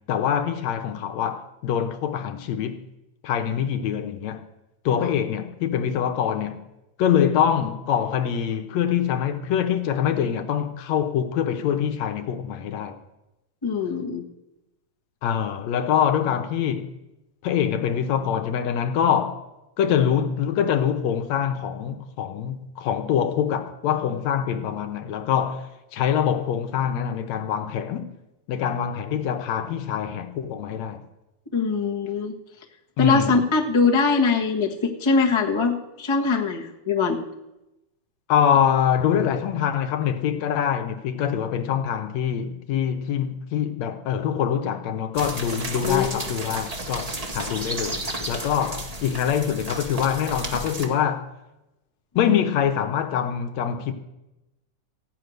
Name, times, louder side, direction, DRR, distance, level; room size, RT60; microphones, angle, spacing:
voice 1, 0.1-2.8 3.2-4.4 4.9-6.7 7.0-13.0 15.2-17.0 17.4-19.4 19.8-28.1 28.5-31.0 33.0-33.4 38.3-51.2 52.2-53.9, left 8 dB, 75° left, 2.1 m, -24 dB
voice 2, 13.6-14.2 31.5-32.3 33.0-37.2 45.8-46.2, left 4 dB, 25° left, 0.6 m, -22 dB
sound 1, 45.1-50.9, right 1 dB, 20° right, 0.9 m, -32 dB
16.0 x 9.5 x 6.4 m
omnidirectional pair, 3.4 m